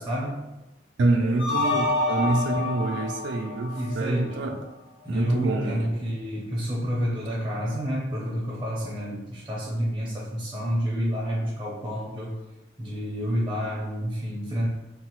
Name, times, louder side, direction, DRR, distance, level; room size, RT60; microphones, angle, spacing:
voice 1, 0.1-0.4 1.1-1.8 3.7-4.6 5.0-12.4 12.8-14.7, equal, 15° right, -6 dB, 0.6 m, -29 dB
voice 2, 1.0-4.5 5.1-5.9 9.1-9.2, right 2 dB, 75° right, 1 dB, 0.4 m, -26 dB
sound 1, 1.4-4.5, left 2 dB, 85° left, 0.9 m, -28 dB
3.1 x 2.0 x 2.9 m, 0.97 s
head